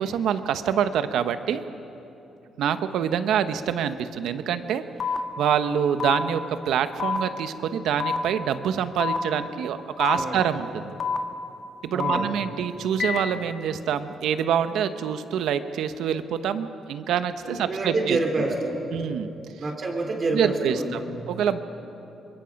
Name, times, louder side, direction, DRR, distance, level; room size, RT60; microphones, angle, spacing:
voice 1, 0.0-1.6 2.6-4.8 5.4-10.9 11.8-18.2 18.9-19.3 20.3-21.0 21.3-21.6, right 8 dB, 80° right, 10 dB, 1.0 m, -26 dB
sound 1, 5.0-5.2 6.0-6.2 7.0-7.2 8.0-8.2 9.0-9.2 10.0-10.2 11.0-11.2 12.0-12.2 13.0-13.2, left 6 dB, 45° left, 1.4 m, -26 dB
voice 2, 11.9-12.3 17.4-18.9 19.6-21.2, right 2 dB, 40° right, 2 dB, 4.0 m, -27 dB
25.5 x 22.0 x 5.3 m, 2.9 s
cardioid pair, 90°, 0 cm